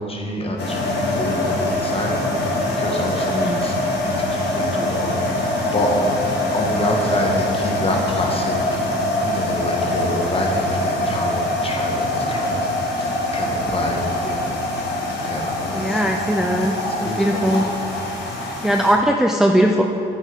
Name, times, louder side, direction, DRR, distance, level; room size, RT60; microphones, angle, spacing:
voice 1, 0.0-5.5 5.7-5.9 6.5-8.6 8.9-14.0 14.3-14.6 15.2-16.2 17.0-17.4 17.8-18.4, left 1 dB, 30° left, 0 dB, 1.6 m, -28 dB
sound 1, 0.6-18.9, left 1 dB, 55° left, 1.8 m, -23 dB
voice 2, 15.7-16.7 17.0-17.6 18.6-19.8, equal, ahead, 1 dB, 0.5 m, -19 dB
9.0 x 7.3 x 3.7 m, 2.9 s
supercardioid pair, 60°, 20 cm